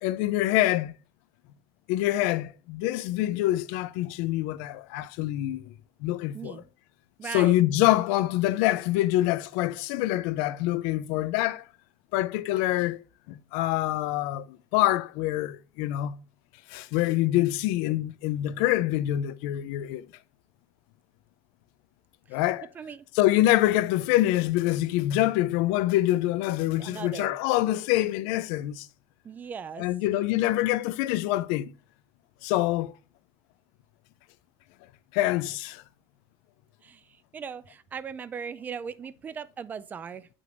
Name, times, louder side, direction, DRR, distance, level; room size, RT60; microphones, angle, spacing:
voice 1, 0.0-0.9 1.9-5.7 6.0-6.6 7.3-11.7 12.1-13.0 13.3-14.4 14.7-16.2 16.7-20.1 22.3-22.7 23.1-28.9 29.8-31.7 32.4-32.9 35.1-35.8, left 15 dB, 85° left, 0.5 m, -25 dB
voice 2, 6.3-6.7 7.2-7.6 22.7-23.0 26.8-27.4 29.2-29.9 36.8-37.1 37.3-40.3, right 6 dB, 20° right, 0.3 m, -38 dB
7.7 x 6.2 x 2.5 m
cardioid pair, 160°, 8 cm